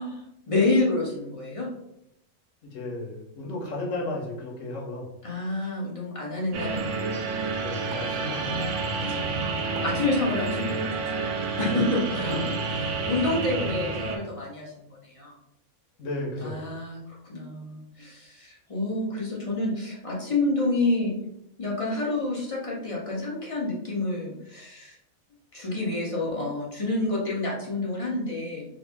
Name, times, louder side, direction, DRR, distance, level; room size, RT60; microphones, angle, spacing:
voice 1, 0.0-1.7 5.2-7.0 9.1-15.3 16.4-21.1 21.6-25.0 25.5-28.7, left 2 dB, 30° left, -4 dB, 0.9 m, -29 dB
voice 2, 2.6-5.1 7.6-9.1 11.6-11.9 16.0-16.7, left 2 dB, 80° left, -2 dB, 1.4 m, -34 dB
sound 1, 6.5-14.2, right 4 dB, 75° right, 0.9 m, -29 dB
3.8 x 2.1 x 3.5 m, 0.81 s
omnidirectional pair, 1.3 m